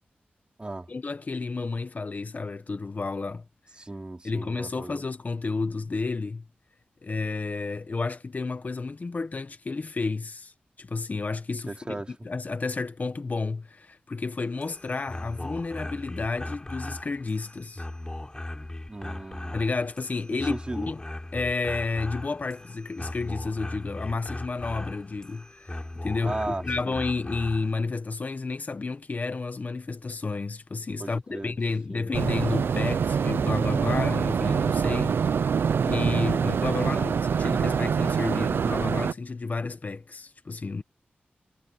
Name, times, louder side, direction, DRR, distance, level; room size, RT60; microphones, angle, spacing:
voice 1, 0.9-3.4 4.2-6.4 7.0-17.9 19.5-21.0 21.3-40.8, left 3 dB, 45° left, 1.3 m, -31 dB
voice 2, 3.8-5.0 11.7-12.1 18.9-19.6 20.3-20.9 26.2-27.0 31.0-31.6 31.9-32.1 36.9-37.3, right 2 dB, 25° right, 4.0 m, -36 dB
sound 1, 14.4-27.7, left 1 dB, 20° left, 4.9 m, -38 dB
sound 2, 32.1-39.1, right 6 dB, 85° right, 0.5 m, -25 dB
wide cardioid pair, 80°, 4 cm